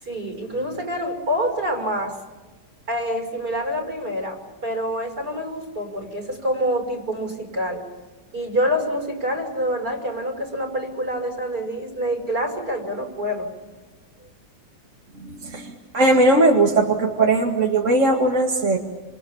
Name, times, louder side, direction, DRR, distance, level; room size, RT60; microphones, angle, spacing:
voice 1, 0.0-2.2 2.9-7.8 8.3-13.5, equal, 65° right, 4 dB, 6.4 m, -26 dB
voice 2, 15.1-18.8, right 2 dB, 45° right, 0 dB, 2.3 m, -19 dB
29.0 x 28.0 x 7.2 m, 1.3 s
omnidirectional pair, 1.8 m